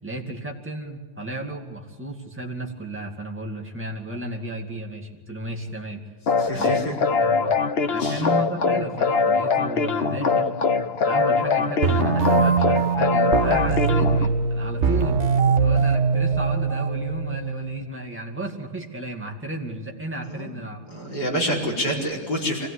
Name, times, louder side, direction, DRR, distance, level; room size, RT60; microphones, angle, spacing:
voice 1, 0.0-6.0 6.5-7.6 7.9-10.6 11.0-15.2 15.6-20.8, right 2 dB, 5° right, 1 dB, 2.2 m, -33 dB
sound 1, 6.3-14.3, left 5 dB, 80° left, 0.5 m, -22 dB
voice 2, 6.3-6.8 8.0-8.2 20.2-20.5 20.9-22.7, equal, 45° left, -2 dB, 5.4 m, -27 dB
sound 2, 11.8-17.8, right 5 dB, 40° right, 1.4 m, -22 dB
24.0 x 16.5 x 9.9 m, 1.5 s
omnidirectional pair, 2.4 m